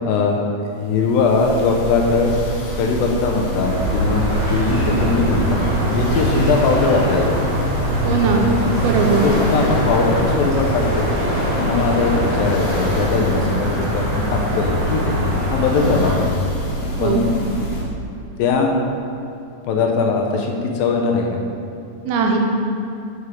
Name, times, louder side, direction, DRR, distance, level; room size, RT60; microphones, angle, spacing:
voice 1, 0.0-2.3 2.8-5.6 5.9-7.4 9.2-11.1 11.6-15.2 15.5-16.3 17.0-17.3 18.4-18.8 19.7-21.4, left 4 dB, 80° left, 1 dB, 2.3 m, -20 dB
sound 1, 0.8-17.8, equal, 65° left, 1.8 m, -27 dB
sound 2, 3.6-16.2, equal, 70° right, 2.6 m, -24 dB
sound 3, 4.3-13.0, equal, 45° left, 0.8 m, -25 dB
voice 2, 8.0-8.5 8.8-9.2 17.0-17.2 22.1-22.4, right 5 dB, 85° right, 2 dB, 2.7 m, -19 dB
8.3 x 4.7 x 4.8 m, 2.6 s
omnidirectional pair, 4.3 m